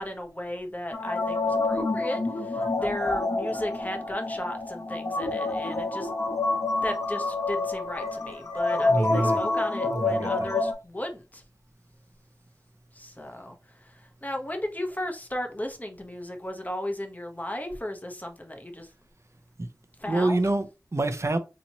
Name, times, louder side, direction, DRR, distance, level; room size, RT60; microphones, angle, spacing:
voice 1, 0.0-6.1 6.8-11.4 12.9-13.5 13.8-13.9 14.2-18.9 20.0-20.4, left 1 dB, 20° left, 0.8 m, -35 dB
sound 1, 0.9-10.7, left 2 dB, 50° left, 0.9 m, -28 dB
voice 2, 8.7-9.4 9.8-10.6 19.6-19.7 20.0-21.4, right 2 dB, 40° right, 0.6 m, -27 dB
4.1 x 2.9 x 2.8 m
wide cardioid pair, 55°, 7 cm